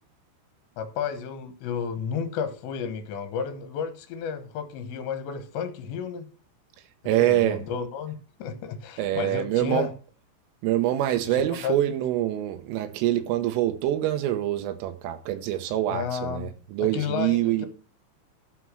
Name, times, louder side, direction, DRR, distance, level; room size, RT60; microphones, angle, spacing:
voice 1, 0.8-6.3 7.2-9.9 11.3-11.8 15.9-16.5 16.8-17.7, left 7 dB, 70° left, 3.3 m, -32 dB
voice 2, 7.1-7.6 9.0-9.9 10.6-17.7, right 13 dB, 85° right, 3.6 m, -25 dB
12.0 x 6.8 x 6.2 m
omnidirectional pair, 5.7 m